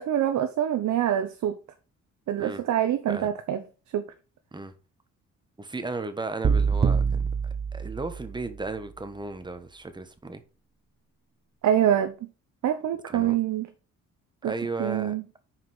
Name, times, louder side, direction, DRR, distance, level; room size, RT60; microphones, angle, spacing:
voice 1, 0.0-1.6 2.3-3.6 3.9-4.1 11.6-12.1 12.6-13.7 14.4-14.5 14.8-15.2, right 10 dB, 70° right, 0.9 m, -25 dB
voice 2, 5.6-7.3 7.7-10.4 13.1-13.4 14.4-15.1, right 3 dB, 15° right, 1.3 m, -35 dB
sound 1, 6.4-8.6, right 6 dB, 30° right, 0.7 m, -25 dB
5.8 x 4.8 x 6.0 m
cardioid pair, 90°, 30 cm